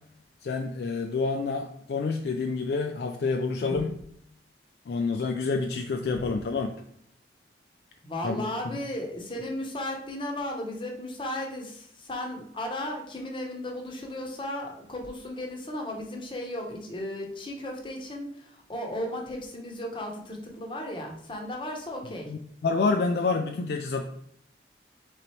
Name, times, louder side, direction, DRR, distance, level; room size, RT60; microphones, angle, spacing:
voice 1, 0.4-3.9 4.9-6.7 8.2-8.5 22.3-24.0, left 4 dB, 60° left, 4 dB, 0.3 m, -28 dB
voice 2, 3.6-3.9 8.0-22.3, left 1 dB, 30° left, 1 dB, 0.8 m, -35 dB
4.0 x 3.1 x 4.2 m, 0.68 s
head